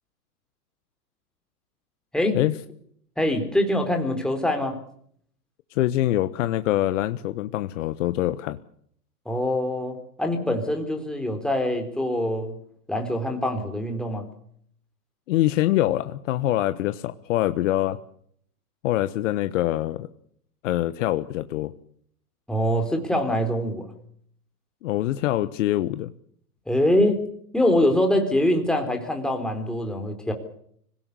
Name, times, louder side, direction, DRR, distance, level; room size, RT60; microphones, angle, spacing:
voice 1, 3.2-4.8 9.3-12.5 12.9-14.2 22.5-23.9 26.7-27.2 27.5-30.3, left 1 dB, ahead, 3 dB, 4.1 m, -24 dB
voice 2, 5.7-8.6 15.3-18.0 18.8-20.1 20.6-21.7 24.8-26.1, left 14 dB, 50° left, 11 dB, 1.2 m, -24 dB
25.5 x 17.0 x 8.4 m, 0.66 s
hypercardioid pair, 130°, 47 cm